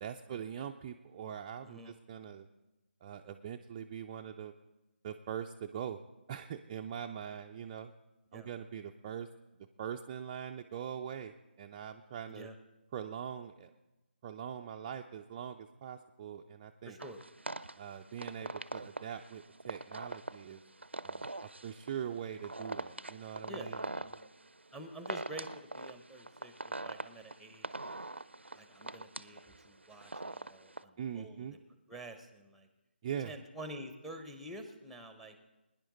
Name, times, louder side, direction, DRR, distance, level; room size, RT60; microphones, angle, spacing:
voice 1, 0.0-2.5 3.0-4.5 5.0-6.0 6.3-7.9 8.3-9.3 9.8-12.5 12.9-13.7 14.2-17.0 17.8-20.6 21.0-21.3 21.6-23.8 31.0-31.6 33.0-33.3, right 8 dB, 20° right, 3 dB, 0.3 m, -42 dB
voice 2, 1.6-2.0 8.3-8.5 12.3-12.5 16.8-17.2 23.5-24.2 24.7-28.1 28.5-31.6 31.9-32.7 33.2-35.4, right 1 dB, ahead, 8 dB, 0.8 m, -48 dB
sound 1, 17.0-30.8, right 2 dB, 85° right, 0.5 m, -43 dB
21.5 x 10.0 x 3.9 m, 1.0 s
figure-of-eight pair, 150°, 6 cm